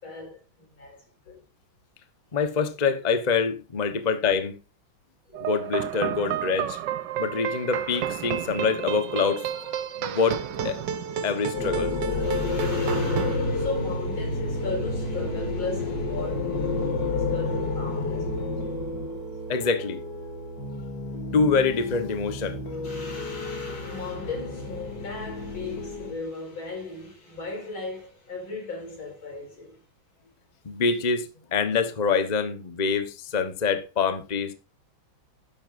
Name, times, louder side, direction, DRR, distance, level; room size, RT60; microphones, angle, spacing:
voice 1, 0.0-1.4 12.2-18.8 22.8-29.8, left 3 dB, 80° left, 5.4 m, -37 dB
voice 2, 2.3-4.5 5.4-6.8 7.2-10.4 10.6-10.8 11.2-12.3 19.5-20.0 21.3-22.6 30.6-34.5, left 5 dB, 30° left, 0.9 m, -25 dB
sound 1, 5.3-13.4, right 9 dB, 65° right, 1.4 m, -31 dB
sound 2, 11.5-26.1, left 2 dB, 60° left, 2.7 m, -30 dB
12.5 x 10.5 x 2.6 m
omnidirectional pair, 2.2 m